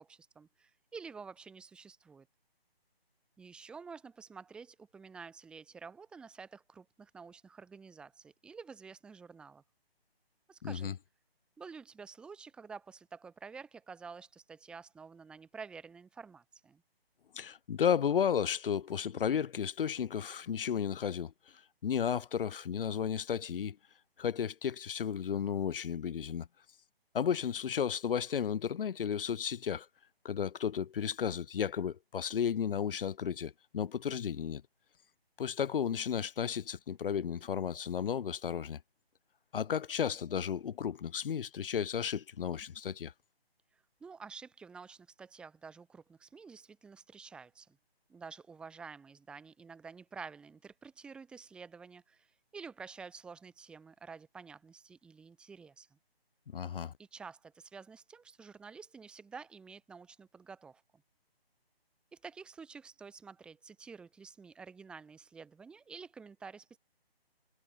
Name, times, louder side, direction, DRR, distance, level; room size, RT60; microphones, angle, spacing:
voice 1, 0.0-2.3 3.4-9.6 10.5-11.0 11.6-16.8 43.7-47.8 48.1-56.0 57.0-60.8 62.1-66.8, right 5 dB, 5° right, 1.3 m, -50 dB
voice 2, 10.6-10.9 17.3-21.3 21.8-23.8 24.2-26.5 27.1-29.9 30.2-34.6 35.4-38.8 39.5-43.1 56.5-56.9, left 8 dB, 60° left, 0.5 m, -33 dB
figure-of-eight pair, 160°, 31 cm